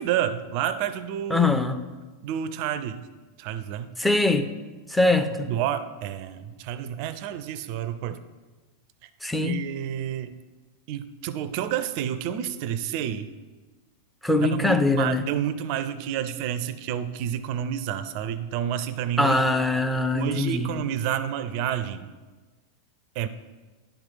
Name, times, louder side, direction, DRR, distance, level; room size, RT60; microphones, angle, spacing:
voice 1, 0.0-1.5 2.2-3.0 3.4-3.9 5.5-8.2 9.4-10.4 10.9-13.3 14.4-19.4 20.1-22.1 23.2-23.3, right 10 dB, 45° right, 14 dB, 0.5 m, -29 dB
voice 2, 1.3-1.8 4.0-4.5 4.9-5.5 9.2-9.6 14.2-15.2 19.2-20.7, left 2 dB, 5° left, 7 dB, 0.5 m, -22 dB
10.5 x 4.9 x 5.5 m, 1.3 s
figure-of-eight pair, 90°, 0 cm